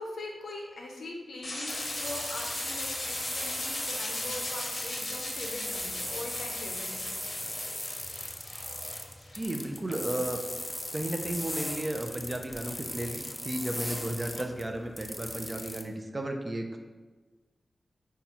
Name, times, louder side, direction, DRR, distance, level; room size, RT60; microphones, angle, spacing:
voice 1, 0.0-7.5 13.8-14.0, left 2 dB, 85° left, 0 dB, 0.5 m, -42 dB
sound 1, 1.4-9.5, left 1 dB, 50° left, 0.8 m, -39 dB
sound 2, 1.7-15.8, left 1 dB, 20° left, 0.4 m, -37 dB
voice 2, 9.3-10.4 10.9-16.8, right 1 dB, 35° right, 4 dB, 0.5 m, -34 dB
5.4 x 2.3 x 2.9 m, 1.3 s
cardioid pair, 45°, 0 cm